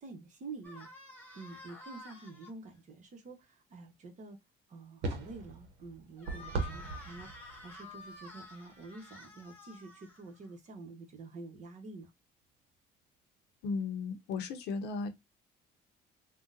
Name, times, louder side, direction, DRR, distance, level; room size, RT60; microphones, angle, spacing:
voice 1, 0.0-0.9 1.3-4.4 4.7-12.1, right 3 dB, 45° right, 1.1 m, -48 dB
sound 1, 0.6-2.5 6.2-10.5, left 2 dB, 10° left, 1.2 m, -50 dB
sound 2, 5.0-8.5 8.8-8.9, right 3 dB, 80° right, 0.9 m, -39 dB
voice 2, 13.6-15.1, left 4 dB, 85° left, 0.7 m, -35 dB
3.5 x 2.3 x 2.5 m
cardioid pair, 110°, 17 cm